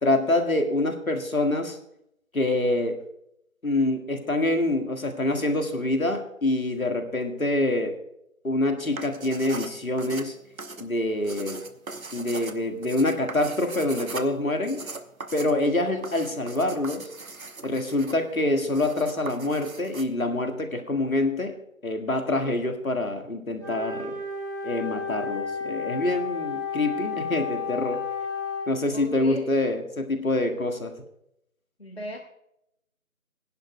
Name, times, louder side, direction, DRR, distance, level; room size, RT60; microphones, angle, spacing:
voice 1, 0.0-1.8 2.3-3.0 3.6-8.0 8.4-10.4 10.8-11.6 12.1-14.8 15.3-17.1 17.6-21.6 21.8-24.2 24.6-28.0 28.7-30.9, left 2 dB, 80° left, 5 dB, 1.9 m, -26 dB
sound 1, 8.8-20.0, right 3 dB, 75° right, 1.1 m, -39 dB
Wind instrument woodwind instrument, 23.6-28.8, left 5 dB, 10° right, 3.8 m, -32 dB
voice 2, 28.9-29.6 31.8-32.2, left 1 dB, 45° left, 3 dB, 0.9 m, -37 dB
21.5 x 10.5 x 2.3 m, 0.78 s
figure-of-eight pair, 180°, 41 cm